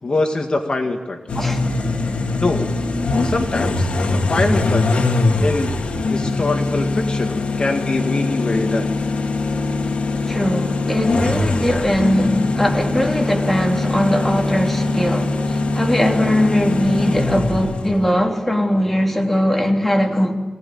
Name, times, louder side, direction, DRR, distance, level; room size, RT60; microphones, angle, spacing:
voice 1, 0.0-1.2 2.3-2.7 3.2-4.8 5.4-8.9, left 2 dB, 45° left, 2.0 m, -23 dB
sound 1, 1.3-18.1, left 3 dB, 70° left, 2.3 m, -21 dB
voice 2, 1.3-1.7 10.3-20.4, equal, 10° left, 3.2 m, -20 dB
23.5 x 18.0 x 8.7 m
wide cardioid pair, 95°, 2 cm